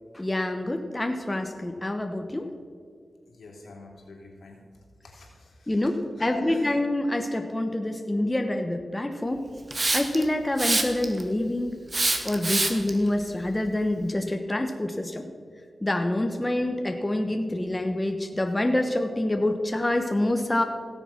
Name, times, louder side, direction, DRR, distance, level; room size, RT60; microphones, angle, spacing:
voice 1, 0.1-2.5 5.7-9.5 9.9-11.7 12.2-15.2 15.8-20.6, left 1 dB, 20° left, 5 dB, 1.1 m, -26 dB
voice 2, 3.3-4.6 5.0-6.7, left 3 dB, 85° left, -2 dB, 3.1 m, -43 dB
Hiss, 9.7-10.2 10.6-11.2 11.9-12.9, right 2 dB, 40° right, 1.5 m, -24 dB
17.0 x 7.1 x 5.8 m, 2.1 s
cardioid pair, 60°, 0 cm